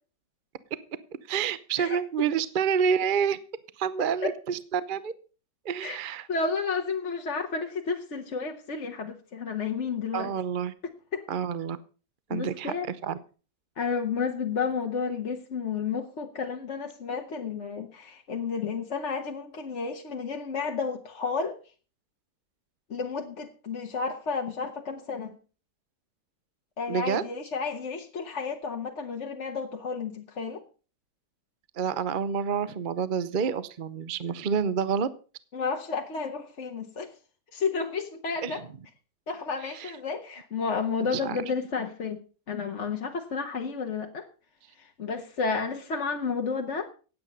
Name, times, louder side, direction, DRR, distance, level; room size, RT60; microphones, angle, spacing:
voice 1, 1.3-3.4 3.8-5.1 5.6-6.3 10.1-10.7 11.3-11.8 12.3-12.7 13.0-13.2 26.9-27.2 31.8-35.1 38.4-38.6 39.6-39.9 41.0-41.4, right 7 dB, 40° right, 15 dB, 0.8 m, -28 dB
voice 2, 6.3-10.3 11.1-11.2 12.3-12.9 13.8-21.6 22.9-25.4 26.8-30.6 35.5-37.1 37.5-38.6 39.3-42.2 42.5-44.2 44.8-46.9, left 5 dB, 50° left, 3 dB, 1.4 m, -31 dB
17.0 x 8.8 x 5.4 m, 0.37 s
omnidirectional pair, 1.7 m